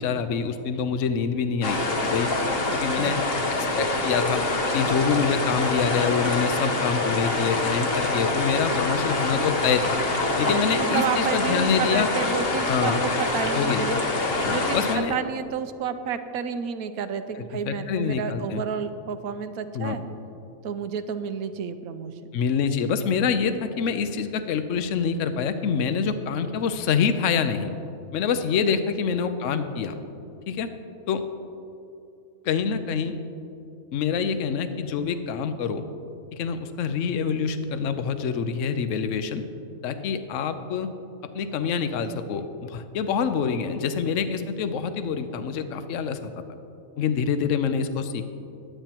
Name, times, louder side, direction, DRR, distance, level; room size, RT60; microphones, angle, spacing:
voice 1, 0.0-2.3 2.7-3.2 3.8-4.4 4.7-10.0 10.4-12.1 12.7-13.0 13.5-13.8 14.4-15.1 17.3-18.6 19.7-20.0 22.3-27.7 28.1-30.0 30.5-30.7 31.1-31.2 32.4-33.1 33.9-35.8 36.3-39.4 39.8-40.9 41.3-46.4 47.0-48.3, left 6 dB, 65° left, 9 dB, 1.0 m, -26 dB
sound 1, 1.6-15.0, left 2 dB, 45° left, 1.3 m, -25 dB
voice 2, 10.4-13.9 14.5-20.0 20.6-22.3 28.7-28.8, right 7 dB, 90° right, 9 dB, 1.2 m, -31 dB
21.5 x 9.1 x 3.0 m, 2.9 s
omnidirectional pair, 1.5 m